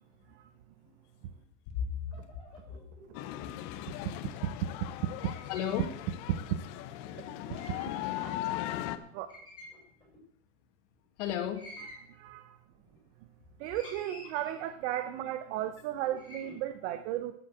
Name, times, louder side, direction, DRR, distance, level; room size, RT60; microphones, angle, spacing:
voice 1, 1.7-2.4 2.7-2.8 5.5-5.9 8.3-8.8 11.2-11.6, left 9 dB, 70° left, 6 dB, 2.4 m, -35 dB
sound 1, 2.1-3.3 5.0-5.8 6.0-6.1 6.9-7.9 8.4-8.5 8.7-9.0 9.3-10.2 11.2-12.1 12.8-13.3 13.6-14.8 15.6-16.6, left 1 dB, 10° left, 5.8 m, -51 dB
sound 2, 3.1-9.0, left 14 dB, 50° left, 1.1 m, -38 dB
voice 2, 4.4-4.9 5.2-5.3 6.3-6.4 7.5-7.9 8.2-8.3 9.1-9.3 12.1-12.6 13.6-17.3, right 12 dB, 65° right, 10 dB, 1.1 m, -35 dB
11.5 x 8.4 x 7.7 m, 0.69 s
supercardioid pair, 150°, 37 cm